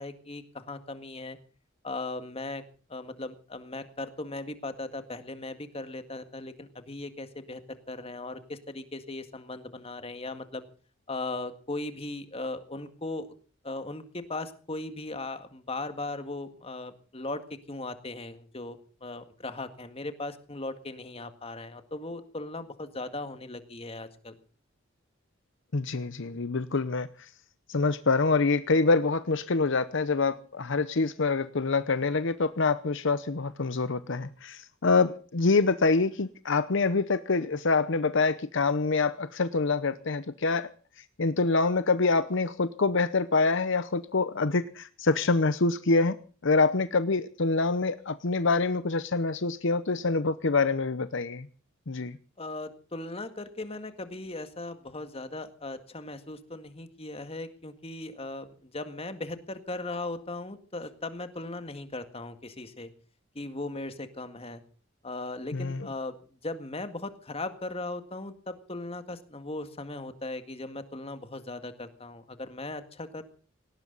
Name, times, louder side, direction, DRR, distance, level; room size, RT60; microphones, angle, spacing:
voice 1, 0.0-1.4 1.8-2.6 2.9-10.6 11.1-13.3 13.6-17.4 17.7-24.3 52.4-62.9 63.4-64.6 65.0-66.2 66.4-73.2, left 2 dB, 30° left, 9 dB, 1.9 m, -38 dB
voice 2, 25.7-27.1 27.7-40.7 41.2-46.2 46.4-51.5 51.9-52.2 65.5-65.9, left 3 dB, 65° left, 13 dB, 0.8 m, -26 dB
18.5 x 18.5 x 4.0 m, 0.39 s
head